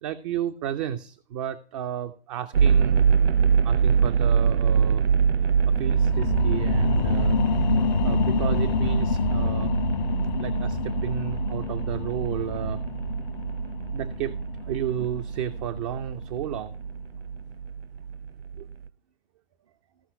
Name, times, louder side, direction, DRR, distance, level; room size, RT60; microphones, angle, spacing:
voice 1, 0.0-3.0 3.6-5.0 5.8-7.4 8.0-9.7 10.4-12.8 13.9-14.3 14.7-16.7 18.6-18.7, right 10 dB, 30° right, 10 dB, 0.6 m, -32 dB
sound 1, 2.5-18.9, right 6 dB, 80° right, 0.5 m, -25 dB
sound 2, 5.6-16.7 17.2-17.3, left 7 dB, 50° left, 0.6 m, -29 dB
15.0 x 5.6 x 5.5 m, 0.41 s
figure-of-eight pair, 110°, 30 cm